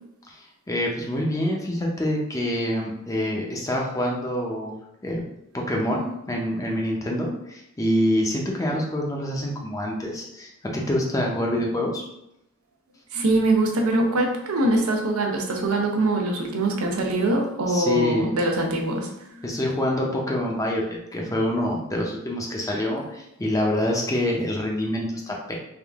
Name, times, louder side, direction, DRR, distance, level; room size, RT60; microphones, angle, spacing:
voice 1, 0.7-4.7 5.0-5.2 5.5-12.0 17.7-18.3 19.4-20.8 21.1-25.5, left 1 dB, 15° left, -1 dB, 0.6 m, -26 dB
voice 2, 13.1-19.6, right 2 dB, 90° right, 2 dB, 0.7 m, -23 dB
3.6 x 2.5 x 3.5 m, 0.82 s
head